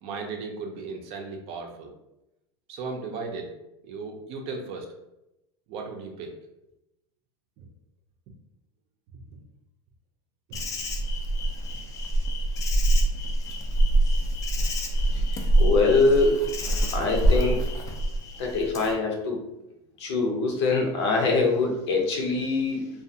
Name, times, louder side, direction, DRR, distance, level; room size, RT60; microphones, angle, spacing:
voice 1, 0.0-1.9 2.7-3.5 3.8-4.9 5.7-6.3 7.6-7.7 9.3-9.4 10.5-10.6, right 4 dB, 40° right, 2 dB, 0.5 m, -36 dB
Insect, 10.5-18.9, right 1 dB, 25° left, 0.3 m, -25 dB
voice 2, 15.6-16.5 16.9-17.6 18.4-19.4 20.0-22.9, left 3 dB, 85° left, 1 dB, 0.7 m, -23 dB
2.4 x 2.3 x 2.6 m, 0.90 s
supercardioid pair, 145°, 14 cm